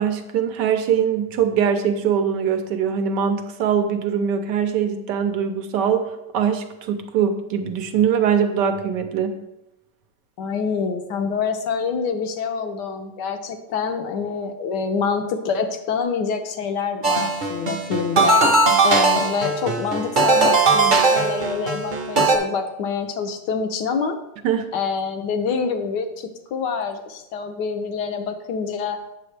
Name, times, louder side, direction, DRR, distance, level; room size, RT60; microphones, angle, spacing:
voice 1, 0.0-9.4 24.4-24.7, right 7 dB, 70° right, 7 dB, 1.3 m, -22 dB
voice 2, 10.4-18.4 18.8-24.2 24.7-29.0, left 5 dB, 70° left, 6 dB, 1.3 m, -26 dB
sound 1, 17.0-22.4, right 3 dB, 40° right, 0.7 m, -19 dB
8.4 x 6.9 x 3.3 m, 0.92 s
omnidirectional pair, 2.0 m